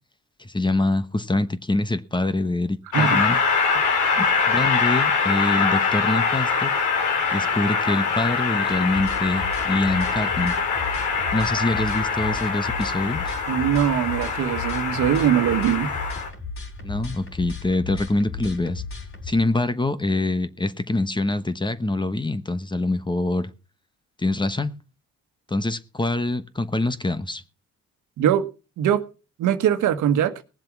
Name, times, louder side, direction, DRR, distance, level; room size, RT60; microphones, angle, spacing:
voice 1, 0.4-3.4 4.2-6.7 7.3-10.5 11.3-13.3 16.8-18.8 19.2-23.5 24.2-24.7 25.5-27.4, left 2 dB, 15° left, 1.1 m, -25 dB
Train, 2.9-16.3, left 5 dB, 80° left, 3.1 m, -23 dB
sound 1, 8.7-19.3, left 3 dB, 45° left, 3.8 m, -35 dB
voice 2, 13.5-15.9 28.2-28.5 28.8-29.0 29.4-30.3, right 10 dB, 80° right, 1.5 m, -21 dB
19.0 x 7.4 x 6.0 m
cardioid pair, 90°, 30 cm